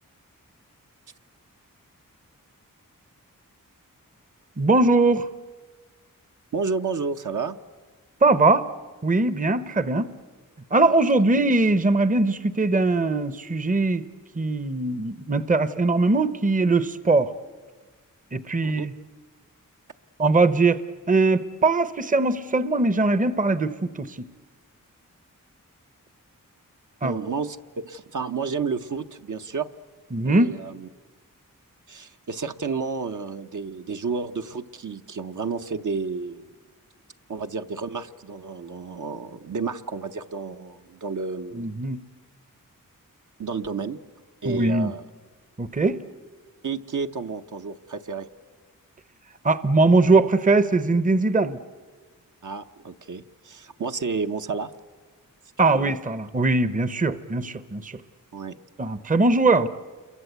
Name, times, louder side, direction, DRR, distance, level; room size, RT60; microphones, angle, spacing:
voice 1, 4.6-5.3 8.2-8.7 9.0-10.1 10.7-14.0 14.3-17.3 18.3-18.9 20.2-20.8 21.1-24.3 27.0-27.2 30.1-30.5 41.5-42.0 44.5-44.9 45.6-46.0 49.4-51.6 55.6-58.0 58.8-59.7, right 3 dB, 25° right, 15 dB, 0.7 m, -21 dB
voice 2, 6.5-7.6 10.9-11.0 18.6-18.9 27.0-29.7 30.2-30.9 31.9-36.5 37.3-41.8 43.4-44.0 44.4-45.1 46.6-48.3 52.4-54.7 55.7-55.9 58.3-58.6, right 5 dB, 65° right, 6 dB, 0.9 m, -31 dB
28.5 x 22.5 x 8.1 m, 1.4 s
wide cardioid pair, 90°, 34 cm